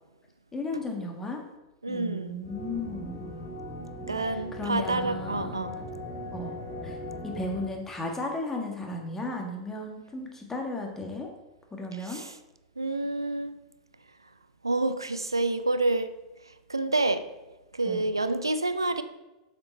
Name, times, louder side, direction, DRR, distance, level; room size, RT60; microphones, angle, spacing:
voice 1, 0.5-1.4 1.9-3.3 4.2-5.6 6.3-7.0 7.2-11.3 11.7-12.2 17.8-18.1, left 2 dB, 15° left, 2 dB, 1.8 m, -35 dB
voice 2, 1.8-2.3 3.8-5.8 12.1-12.3 12.8-13.5 14.6-16.1 16.7-17.2 17.7-19.0, right 2 dB, 85° right, 12 dB, 0.5 m, -28 dB
sound 1, 2.4-7.7, left 1 dB, 60° left, 2.8 m, -39 dB
7.7 x 6.7 x 4.2 m, 1.0 s
figure-of-eight pair, 90°, 2 cm